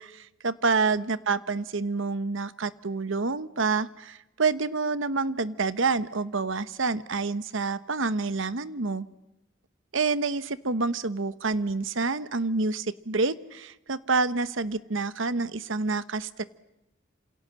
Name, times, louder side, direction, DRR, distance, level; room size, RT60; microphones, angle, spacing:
voice 1, 0.0-9.1 9.9-16.4, right 4 dB, 70° right, 15 dB, 1.1 m, -28 dB
28.0 x 27.5 x 7.6 m, 0.89 s
head